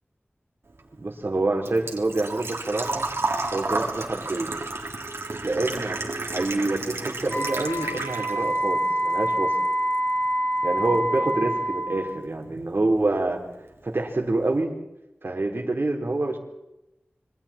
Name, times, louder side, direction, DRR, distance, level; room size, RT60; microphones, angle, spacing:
Engine / Trickle dribble / Fill (with liquid), 0.7-8.6 9.0-10.0 10.2-10.3 12.3-12.4 12.5-12.9 13.2-13.3 13.6-13.7, right 2 dB, 75° right, 3.4 m, -31 dB
voice 1, 1.0-3.0 3.5-4.6 5.4-6.0 6.3-9.6 10.6-13.4 13.8-14.7 15.2-16.4, right 2 dB, 60° right, 1 dB, 4.0 m, -26 dB
Wind instrument woodwind instrument, 7.3-12.1, equal, 35° left, 7.4 m, -26 dB
27.0 x 24.0 x 4.5 m, 0.93 s
wide cardioid pair, 55°, 4 cm